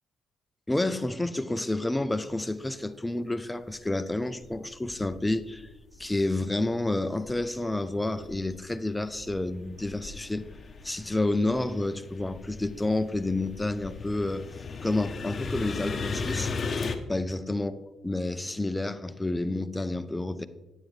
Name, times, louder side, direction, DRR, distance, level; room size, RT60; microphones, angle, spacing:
voice 1, 0.7-5.7 6.0-10.5 10.8-14.5 14.8-17.7 18.0-20.5, left 2 dB, 10° left, 0.5 m, -29 dB
sound 1, 3.7-3.8 4.4-6.1 6.4-7.7 8.1-17.0, left 4 dB, 40° left, 0.8 m, -37 dB
9.0 x 8.9 x 3.2 m
cardioid pair, 90°, 0 cm